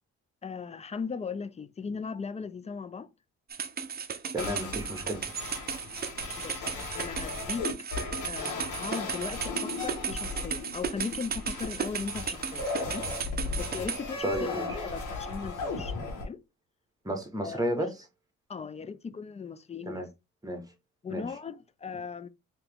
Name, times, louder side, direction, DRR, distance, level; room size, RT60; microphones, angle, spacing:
voice 1, 0.4-3.1 6.4-6.7 6.9-7.7 8.3-13.1 13.6-16.4 17.4-17.9 18.5-20.0 21.0-22.3, left 5 dB, 25° left, 0.4 m, -38 dB
sound 1, 3.5-14.0, right 6 dB, 30° right, 0.6 m, -35 dB
voice 2, 4.3-5.2 14.2-14.6 17.0-17.9 19.9-20.0 20.4-20.6 21.1-21.2, equal, 10° right, 1.2 m, -32 dB
sound 2, 4.4-16.3, left 3 dB, 75° left, 1.5 m, -37 dB
3.4 x 2.9 x 3.4 m
cardioid pair, 90°, 30 cm